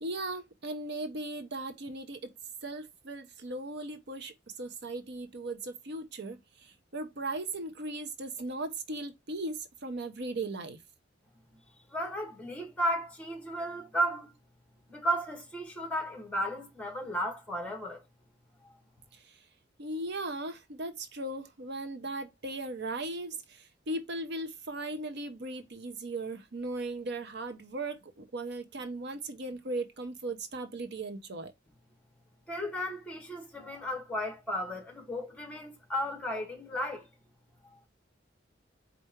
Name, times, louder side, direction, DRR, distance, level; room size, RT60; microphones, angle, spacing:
voice 1, 0.0-2.3 2.6-4.3 4.6-10.8 19.1-19.4 19.8-31.5, right 2 dB, 60° right, 0.8 m, -37 dB
voice 2, 11.9-14.3 14.9-18.0 18.6-18.8 32.5-37.1 37.6-37.8, equal, 10° left, 1.6 m, -34 dB
4.6 x 2.6 x 4.4 m
head